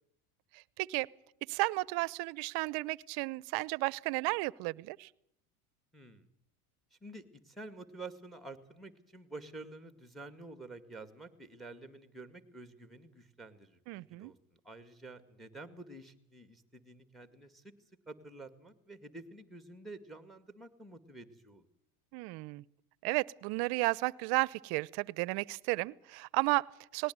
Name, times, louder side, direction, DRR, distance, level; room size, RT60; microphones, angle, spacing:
voice 1, 0.8-1.1 1.5-5.1 13.9-14.3 22.1-22.6 23.0-27.1, right 24 dB, 60° right, 23 dB, 0.8 m, -33 dB
voice 2, 5.9-6.3 6.9-14.4 14.6-17.7 18.1-21.7, right 2 dB, ahead, 10 dB, 2.1 m, -49 dB
19.5 x 18.0 x 9.4 m, 0.73 s
supercardioid pair, 105°, 43 cm